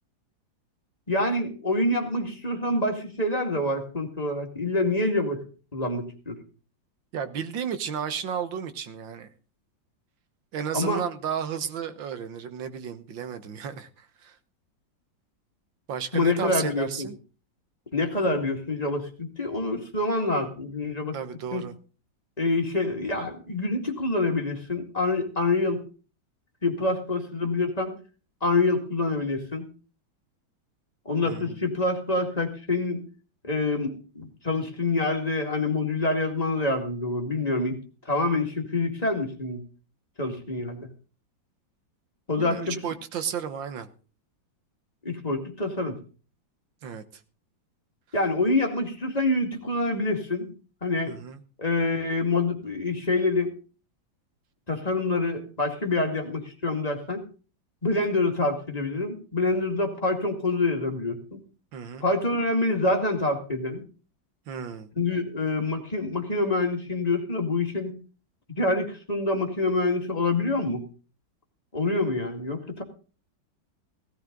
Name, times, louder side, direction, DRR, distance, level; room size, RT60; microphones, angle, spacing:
voice 1, 1.1-5.4 5.7-6.4 10.7-11.0 16.1-17.1 17.9-21.2 21.5-21.6 22.4-25.8 26.6-28.0 28.4-29.6 31.1-33.0 33.4-37.8 38.1-39.6 40.2-40.9 42.3-42.7 45.0-46.0 48.1-50.5 50.8-51.1 51.6-53.5 54.7-57.2 57.8-61.4 62.0-63.8 65.0-68.0 68.6-70.8 71.7-72.8, left 2 dB, 20° left, 2.2 m, -26 dB
voice 2, 7.1-9.3 10.5-14.4 15.9-17.2 21.1-21.8 31.2-31.6 42.4-43.9 46.8-47.0 51.1-51.4 61.7-62.0 64.5-64.9, right 7 dB, 70° right, 1.9 m, -33 dB
17.0 x 13.0 x 3.9 m
omnidirectional pair, 2.1 m